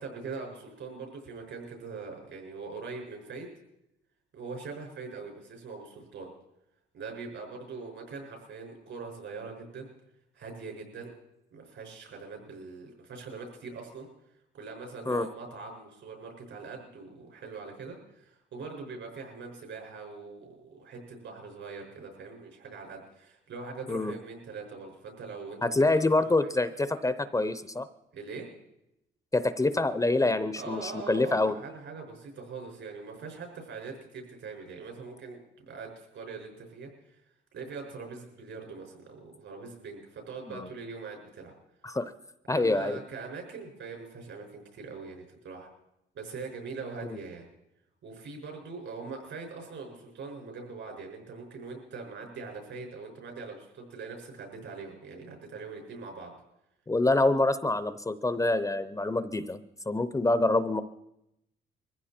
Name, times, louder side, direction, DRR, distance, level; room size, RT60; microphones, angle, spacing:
voice 1, 0.0-3.5 4.3-6.3 6.9-9.9 10.3-11.1 11.5-14.1 14.5-26.5 28.1-28.5 30.6-37.2 37.5-41.5 42.5-45.7 46.1-47.5 48.0-56.3, right 4 dB, 70° right, 2 dB, 5.8 m, -42 dB
voice 2, 25.6-27.9 29.3-31.6 40.5-40.7 41.8-42.1 42.5-43.0 47.0-47.2 56.9-59.6 59.9-60.8, left 2 dB, 15° left, 12 dB, 0.7 m, -26 dB
22.0 x 15.0 x 4.4 m, 0.85 s
cardioid pair, 90°, 20 cm